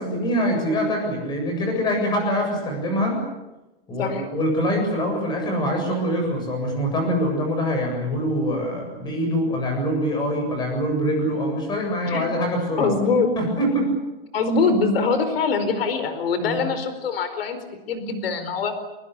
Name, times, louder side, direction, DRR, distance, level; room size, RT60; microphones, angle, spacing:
voice 1, 0.0-3.2 3.9-12.9 13.4-13.9 16.4-16.7, equal, 15° left, 3 dB, 7.8 m, -24 dB
voice 2, 12.8-13.3 14.3-17.6 17.9-18.7, left 4 dB, 90° left, 10 dB, 4.7 m, -23 dB
25.5 x 23.0 x 8.4 m, 1.0 s
supercardioid pair, 175°, 29 cm